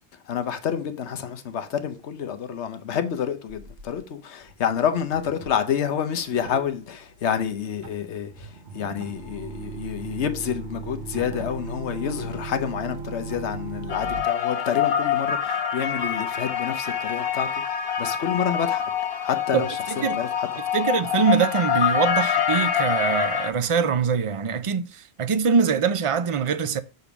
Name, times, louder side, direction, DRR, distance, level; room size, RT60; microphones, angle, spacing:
voice 1, 0.3-8.5 8.7-17.5 18.0-18.8 19.2-20.5, left 8 dB, 90° left, 1.1 m, -28 dB
sound 1, 3.5-4.0 4.4-4.7 4.9-5.5 6.4-14.2, right 4 dB, 80° right, 1.5 m, -37 dB
sound 2, 13.9-23.5, left 8 dB, 65° left, 1.1 m, -25 dB
voice 2, 19.5-20.2 20.7-26.8, right 6 dB, 35° right, 0.6 m, -23 dB
6.8 x 4.1 x 5.9 m
omnidirectional pair, 1.1 m